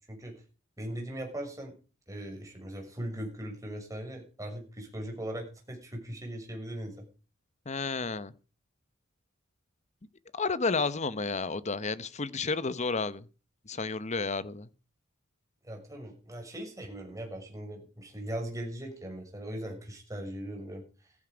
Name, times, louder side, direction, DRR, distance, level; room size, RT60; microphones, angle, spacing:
voice 1, 0.8-1.7 2.1-7.1 15.6-20.8, right 1 dB, 15° right, 6.1 m, -39 dB
voice 2, 7.7-8.3 10.3-13.3 13.7-14.7, left 4 dB, 35° left, 0.9 m, -31 dB
15.0 x 13.5 x 5.1 m
head